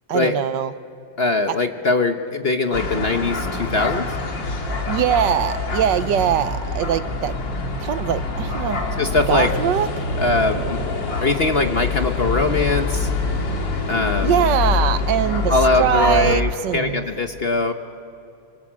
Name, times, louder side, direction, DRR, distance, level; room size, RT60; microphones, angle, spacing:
voice 1, 0.1-0.7 1.5-1.6 4.9-7.4 7.8-8.8 9.3-9.9 14.2-17.0, right 9 dB, 75° right, 13 dB, 1.5 m, -22 dB
voice 2, 1.2-4.1 9.0-9.5 10.2-10.8 11.2-13.1 13.9-14.4 15.5-17.7, left 3 dB, 40° left, 6 dB, 1.0 m, -21 dB
sound 1, 2.7-16.4, left 3 dB, 90° left, 2.9 m, -25 dB
27.0 x 25.5 x 7.4 m, 2.6 s
omnidirectional pair, 2.0 m